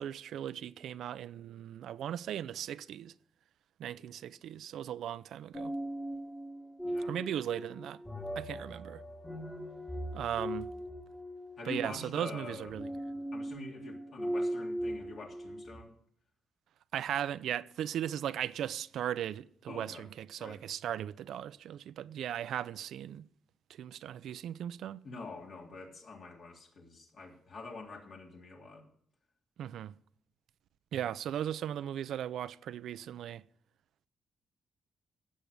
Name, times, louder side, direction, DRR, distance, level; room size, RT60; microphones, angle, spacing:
voice 1, 0.0-3.1 3.8-5.7 7.1-8.0 8.4-9.0 10.1-10.7 11.6-12.9 16.9-23.2 23.7-25.0 29.6-29.9 30.9-33.4, right 10 dB, 80° right, 0.5 m, -37 dB
sound 1, 5.5-15.8, equal, 10° left, 1.8 m, -39 dB
voice 2, 6.8-7.2 11.6-12.8 13.3-15.9 19.7-20.0 20.4-20.6 25.0-28.8, left 3 dB, 55° left, 3.3 m, -45 dB
16.0 x 7.6 x 6.7 m
cardioid pair, 115°, 0 cm